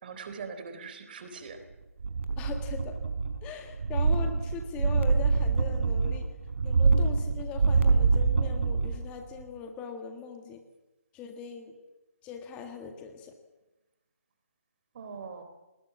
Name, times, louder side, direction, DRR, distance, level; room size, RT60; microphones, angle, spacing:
voice 1, 0.0-1.6 14.9-15.4, right 5 dB, 40° right, 9 dB, 3.7 m, -41 dB
sound 1, 2.0-3.5 3.7-9.0 9.4-9.5, right 4 dB, 55° right, 3.7 m, -25 dB
voice 2, 2.4-3.0 3.4-6.3 6.6-10.6 11.1-11.8 12.2-13.3, left 7 dB, 15° left, 5 dB, 1.7 m, -41 dB
30.0 x 20.0 x 7.3 m, 1.0 s
figure-of-eight pair, 145°, 8 cm